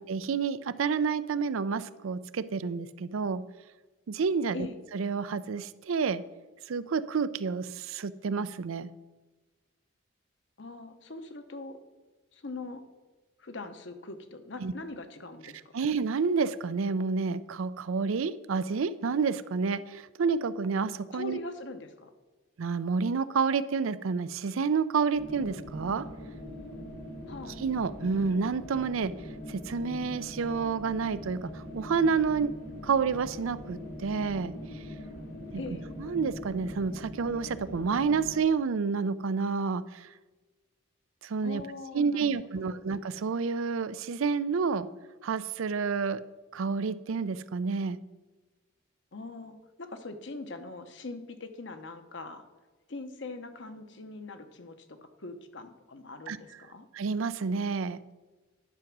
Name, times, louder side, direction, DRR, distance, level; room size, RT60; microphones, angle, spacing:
voice 1, 0.0-3.4 4.1-4.7 4.9-6.2 6.7-8.9 14.6-14.7 15.7-21.4 22.6-26.1 27.6-29.1 29.5-32.5 32.8-34.8 36.0-40.1 41.2-41.6 41.9-44.9 45.2-46.2 46.5-48.0 56.3-56.4 56.9-58.0, right 5 dB, 75° right, 15 dB, 0.4 m, -29 dB
voice 2, 10.6-11.8 12.3-12.8 13.4-15.9 21.1-22.1 27.3-27.6 35.6-35.9 41.4-42.3 42.6-42.8 49.1-52.4 52.9-56.9, left 2 dB, 60° left, 8 dB, 0.9 m, -42 dB
sound 1, 25.1-38.4, left 1 dB, 85° left, 2.6 m, -42 dB
10.5 x 6.0 x 6.0 m, 1.2 s
head